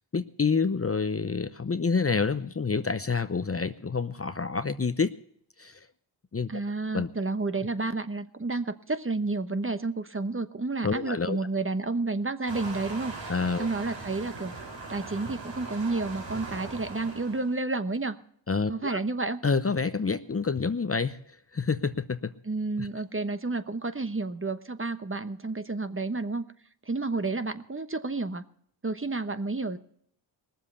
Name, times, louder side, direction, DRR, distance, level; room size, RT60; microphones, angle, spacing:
voice 1, 0.1-5.1 5.6-5.9 6.3-6.5 6.9-7.1 10.8-11.4 13.3-13.7 18.5-19.0 19.4-22.3 22.8-22.9, left 5 dB, 30° left, 11 dB, 0.8 m, -28 dB
voice 2, 6.5-13.3 13.6-14.5 14.9-18.2 18.7-19.4 22.5-26.4 26.9-28.4 28.8-29.8, right 3 dB, 25° right, 10 dB, 1.1 m, -30 dB
Waves surf, 12.5-17.5, right 3 dB, 60° right, 3.4 m, -40 dB
19.0 x 7.5 x 6.9 m, 0.65 s
cardioid pair, 45°, 49 cm